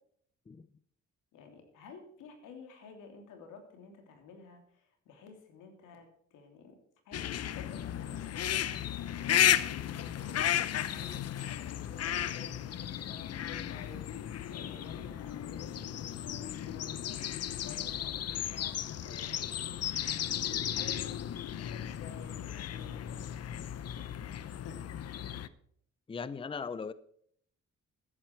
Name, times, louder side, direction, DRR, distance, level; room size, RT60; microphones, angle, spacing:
voice 1, 1.3-6.8 7.0-8.6 9.1-9.4 10.0-17.2 17.6-19.7 20.5-21.3 21.6-23.7 24.6-24.8, left 5 dB, 90° left, 3.1 m, -52 dB
sound 1, 7.1-25.5, left 10 dB, 55° left, 0.8 m, -34 dB
voice 2, 26.1-26.9, left 5 dB, 20° left, 0.6 m, -38 dB
14.0 x 11.0 x 4.6 m
cardioid pair, 90°, 30 cm